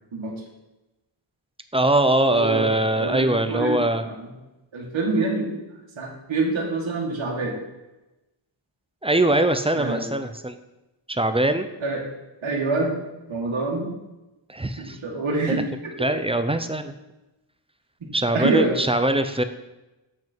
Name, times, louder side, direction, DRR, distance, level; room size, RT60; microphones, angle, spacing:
voice 1, 1.7-4.1 9.0-10.6 11.1-11.7 14.5-15.0 16.0-16.9 18.1-19.4, right 1 dB, 15° right, 9 dB, 0.4 m, -22 dB
voice 2, 2.3-3.8 4.0-4.3 4.7-5.5 6.0-7.6 9.7-10.1 11.8-12.0 12.4-12.9 13.3-13.9 14.8-15.9 18.3-18.8, right 3 dB, 70° right, -2 dB, 2.0 m, -26 dB
7.9 x 5.9 x 4.5 m, 0.99 s
wide cardioid pair, 100°, 48 cm